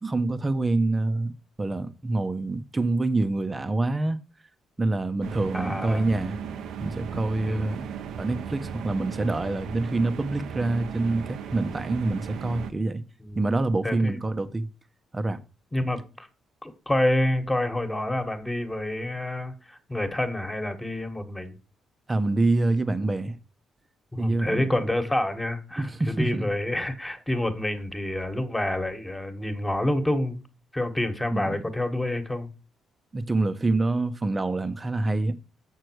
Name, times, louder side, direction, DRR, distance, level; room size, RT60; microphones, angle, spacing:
voice 1, 0.0-1.3 1.6-4.2 4.8-6.4 6.8-7.9 8.1-13.0 13.4-14.7 15.1-15.4 22.1-23.4 24.2-24.8 25.8-26.5 31.3-31.6 33.1-35.4, right 2 dB, 25° right, 1.0 m, -26 dB
sound 1, 5.2-12.7, right 7 dB, 80° right, 0.9 m, -36 dB
voice 2, 5.5-6.0 7.5-7.9 13.2-13.4 13.8-14.2 15.7-16.3 16.6-21.6 24.1-30.4 30.7-32.5, left 1 dB, 10° left, 1.7 m, -28 dB
7.4 x 6.5 x 4.7 m
cardioid pair, 90°, 0 cm